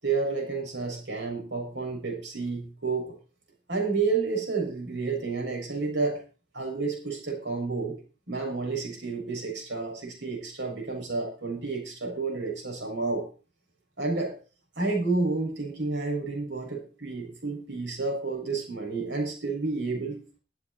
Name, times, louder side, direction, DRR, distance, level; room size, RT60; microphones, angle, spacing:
voice 1, 0.0-3.1 3.7-6.2 6.5-8.0 8.3-13.2 14.0-14.4 14.8-20.4, right 3 dB, 85° right, 1 dB, 6.5 m, -30 dB
14.5 x 13.0 x 4.4 m, 0.35 s
head